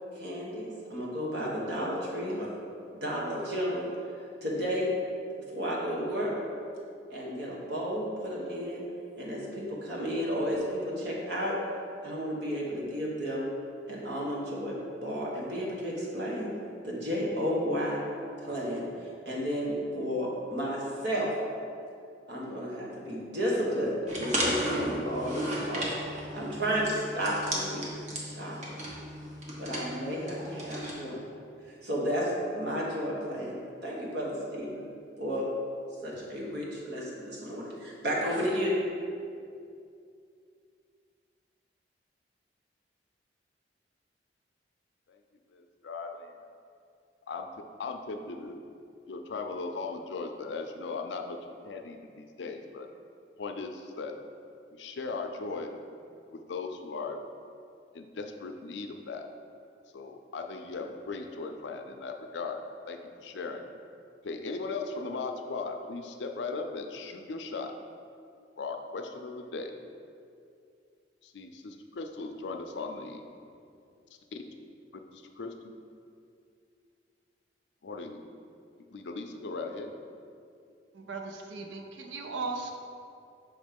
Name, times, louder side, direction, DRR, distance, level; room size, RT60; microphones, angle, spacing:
voice 1, 0.1-2.5 3.0-3.9 4.4-4.9 5.5-6.3 7.1-8.8 9.1-11.5 12.0-13.5 13.9-16.5 16.8-18.0 18.4-18.8 19.2-21.3 22.3-25.9 26.3-27.9 28.3-28.8 29.6-31.2 31.6-33.5 33.8-34.9 35.2-35.4 36.0-38.8, equal, 65° right, -5 dB, 1.3 m, -32 dB
sound 1, 24.1-30.9, right 1 dB, 40° right, 1.0 m, -35 dB
voice 2, 45.5-46.3 47.3-47.5 47.8-48.6 49.1-51.4 51.6-52.9 53.4-54.1 54.7-55.7 56.3-57.2 57.9-59.3 59.9-63.6 64.2-67.7 68.6-69.8 71.2-73.2 74.3-74.4 75.1-75.8 77.8-78.2 78.9-79.9, left 4 dB, 80° left, 4 dB, 0.5 m, -38 dB
voice 3, 80.9-82.7, right 3 dB, 90° right, 4 dB, 0.5 m, -37 dB
6.1 x 3.1 x 5.2 m, 2.4 s
head